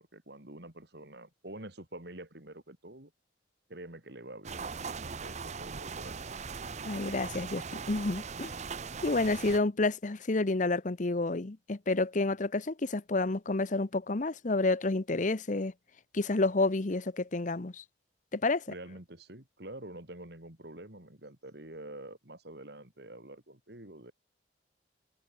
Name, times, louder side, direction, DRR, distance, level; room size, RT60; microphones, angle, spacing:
voice 1, 0.0-3.1 3.7-4.6 5.0-6.4 18.7-24.1, right 1 dB, 60° right, 3.6 m, -47 dB
sound 1, 4.4-9.6, right 5 dB, 35° right, 0.7 m, -40 dB
voice 2, 6.8-8.5 9.0-15.7 16.1-17.8 18.3-18.7, left 2 dB, 40° left, 0.8 m, -29 dB
head